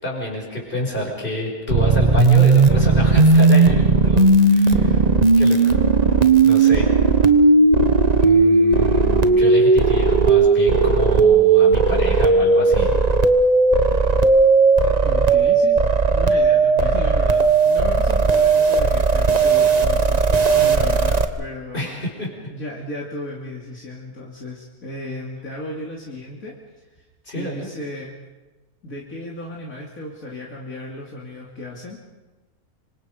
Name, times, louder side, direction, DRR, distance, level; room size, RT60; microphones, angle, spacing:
voice 1, 0.0-5.0 5.4-5.8 6.4-6.9 8.2-12.9 21.7-22.3 27.2-27.7, left 1 dB, 35° left, 0 dB, 5.6 m, -28 dB
sound 1, 1.7-21.2, right 4 dB, 30° right, 1.1 m, -16 dB
voice 2, 15.0-15.8 16.1-22.0 22.5-26.5 26.9-27.0 27.3-28.1 28.8-32.0, left 1 dB, 65° left, -3 dB, 3.2 m, -35 dB
26.5 x 24.5 x 5.2 m, 1.2 s
omnidirectional pair, 1.6 m